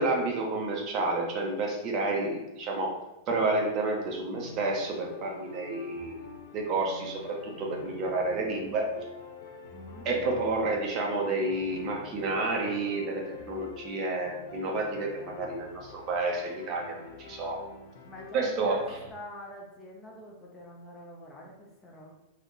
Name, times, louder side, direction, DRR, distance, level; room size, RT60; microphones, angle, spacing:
voice 1, 0.0-2.9 3.3-6.1 6.5-8.9 10.0-17.6 18.3-18.8, right 2 dB, 25° right, 0 dB, 0.8 m, -30 dB
sound 1, 4.3-19.1, left 5 dB, 60° left, 0.8 m, -46 dB
voice 2, 9.7-10.1 18.0-22.1, left 1 dB, 10° left, -3 dB, 0.6 m, -46 dB
4.2 x 3.0 x 3.9 m, 0.98 s
supercardioid pair, 175°, 0 cm